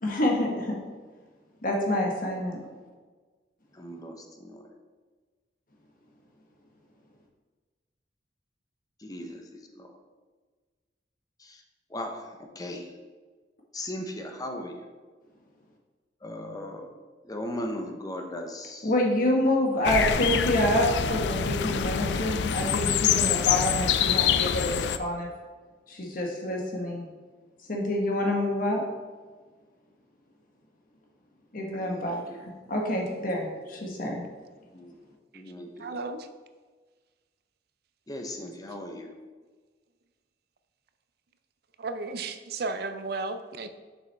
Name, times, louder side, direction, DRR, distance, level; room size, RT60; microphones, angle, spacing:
voice 1, 0.0-0.8 1.6-2.6 18.8-25.3 25.9-27.1 27.7-28.8 31.5-34.3, left 1 dB, 50° left, 0 dB, 1.3 m, -27 dB
voice 2, 3.7-4.6 9.0-9.9 11.4-11.6 11.9-12.9 13.7-14.8 16.2-16.9 17.2-18.9 19.8-20.1 31.7-32.4 34.7-34.9 35.3-36.0 38.1-39.1, left 1 dB, 20° left, 3 dB, 0.7 m, -38 dB
sound 1, 19.8-25.0, left 8 dB, 65° left, 0.3 m, -25 dB
voice 3, 35.8-36.3 41.8-43.7, right 3 dB, 60° right, 9 dB, 0.5 m, -34 dB
7.0 x 6.1 x 3.4 m, 1.4 s
head